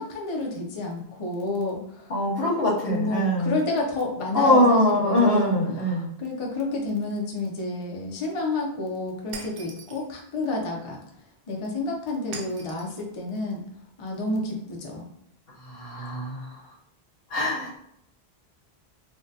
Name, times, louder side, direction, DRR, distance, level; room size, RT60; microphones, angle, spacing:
voice 1, 0.0-2.1 2.9-5.6 5.8-11.0 11.5-13.6 14.0-15.1, left 2 dB, 40° left, -1 dB, 0.5 m, -30 dB
voice 2, 2.1-3.5 4.3-6.1 15.6-16.5 17.3-17.8, left 1 dB, 70° left, -4 dB, 1.1 m, -22 dB
Shatter, 9.3-10.1 12.3-13.0, right 4 dB, 70° right, 0.7 m, -41 dB
3.5 x 2.2 x 2.6 m, 0.75 s
omnidirectional pair, 1.0 m